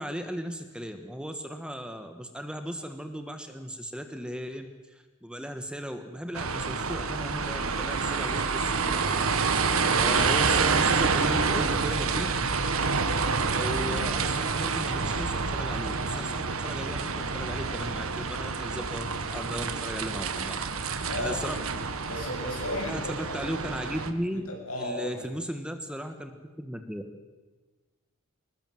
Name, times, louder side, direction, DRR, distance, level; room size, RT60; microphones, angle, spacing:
voice 1, 0.0-9.3 9.9-12.3 13.5-21.6 22.9-24.4 24.8-26.3 26.6-27.0, equal, 5° right, 7 dB, 1.3 m, -36 dB
sound 1, 6.3-24.1, right 4 dB, 75° right, 1.5 m, -28 dB
voice 2, 21.0-21.6 22.1-23.7 24.3-25.2, left 1 dB, 80° left, 0 dB, 7.3 m, -35 dB
21.5 x 20.0 x 7.7 m, 1.3 s
head